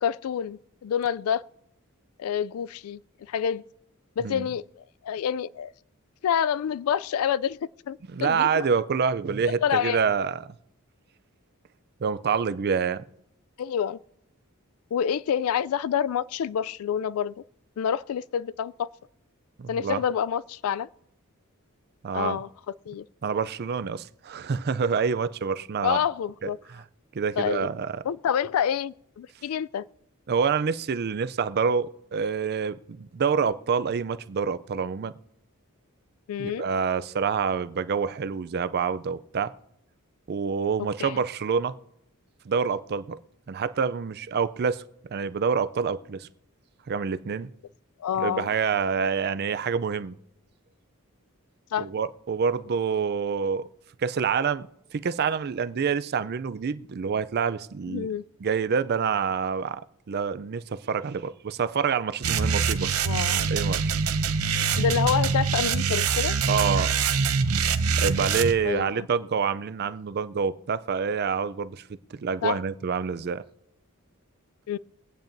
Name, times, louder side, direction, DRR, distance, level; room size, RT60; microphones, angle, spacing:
voice 1, 0.0-1.4 2.2-3.0 3.3-3.6 4.2-5.7 6.2-7.6 7.9-8.7 9.5-10.0 13.6-14.0 14.9-17.3 17.8-18.9 19.7-20.9 22.1-22.5 22.9-23.1 25.8-26.6 27.4-27.7 28.0-29.8 36.3-36.7 41.0-41.2 48.0-48.5 51.7-51.9 57.9-58.2 63.0-63.5 64.8-66.4 68.7-69.1 72.4-72.6 74.7-74.8, left 8 dB, 75° left, 0.3 m, -27 dB
voice 2, 8.1-10.5 12.0-13.0 19.6-20.0 22.0-22.4 23.2-26.0 26.4-26.5 27.1-28.0 30.3-35.1 36.4-39.5 40.3-41.7 42.5-43.2 43.5-44.8 45.1-46.3 46.9-47.5 48.2-50.2 51.8-53.6 54.0-58.1 58.4-59.8 60.1-62.9 63.5-63.9 66.5-66.9 68.0-71.8 72.1-73.4, right 6 dB, 45° right, 0.4 m, -27 dB
sound 1, 62.2-68.5, right 5 dB, 80° right, 0.7 m, -24 dB
23.0 x 8.8 x 2.6 m
head